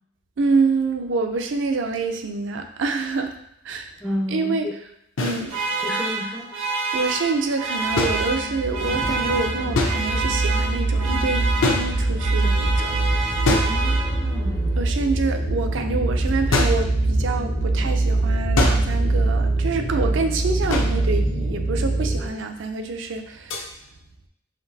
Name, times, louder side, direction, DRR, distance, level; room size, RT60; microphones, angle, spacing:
voice 1, 0.4-3.3 3.6-3.9 4.3-4.7 5.2-5.5 6.9-12.9 14.8-23.7, right 4 dB, 60° right, 5 dB, 0.5 m, -26 dB
voice 2, 4.0-4.8 5.8-6.5 13.5-14.8, left 1 dB, ahead, -4 dB, 0.4 m, -31 dB
sound 1, 5.2-5.4 8.0-8.8 9.8-10.4 11.6-12.4 13.5-14.3 16.5-16.9 18.6-19.1 20.7-21.1 23.5-23.7, left 2 dB, 75° left, 0.7 m, -25 dB
sound 2, 5.5-14.5, right 3 dB, 80° right, 0.9 m, -28 dB
sound 3, 7.8-22.3, right 2 dB, 90° left, 1.4 m, -23 dB
5.8 x 2.6 x 2.7 m, 0.76 s
head